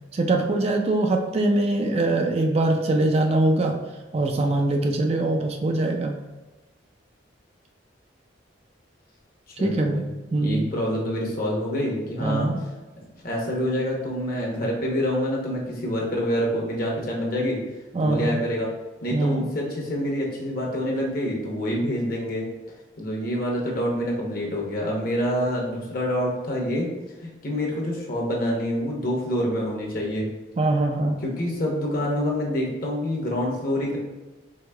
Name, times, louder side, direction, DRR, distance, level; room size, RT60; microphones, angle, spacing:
voice 1, 0.1-3.8 4.1-6.2 9.6-10.1 10.3-10.7 12.2-12.6 17.9-18.4 19.1-19.5 30.6-31.2, right 2 dB, 30° right, 3 dB, 0.3 m, -22 dB
voice 2, 9.6-10.0 10.3-12.5 13.2-17.6 18.0-18.7 19.0-22.4 23.0-26.9 27.2-30.3 31.2-34.0, equal, 50° left, -2 dB, 0.9 m, -26 dB
4.7 x 3.4 x 2.3 m, 1.2 s
head